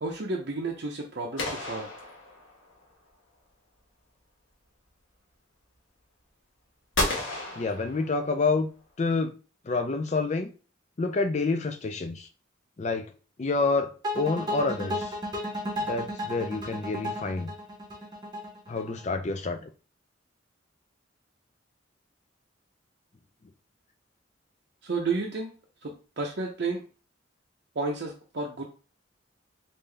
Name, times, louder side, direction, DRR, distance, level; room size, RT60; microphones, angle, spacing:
voice 1, 0.0-1.9 24.8-25.5 25.8-26.8 27.8-28.6, right 3 dB, 55° right, 0.6 m, -31 dB
sound 1, 1.4-2.8 6.9-8.5, left 2 dB, 85° left, 1.2 m, -32 dB
voice 2, 7.6-8.7 9.0-9.3 9.7-10.5 11.0-12.3 12.8-13.1 13.4-15.1 15.9-17.5 18.7-19.6, left 3 dB, 35° left, 0.4 m, -28 dB
sound 2, 14.0-19.1, left 1 dB, 20° right, 0.8 m, -33 dB
3.6 x 2.6 x 3.3 m
head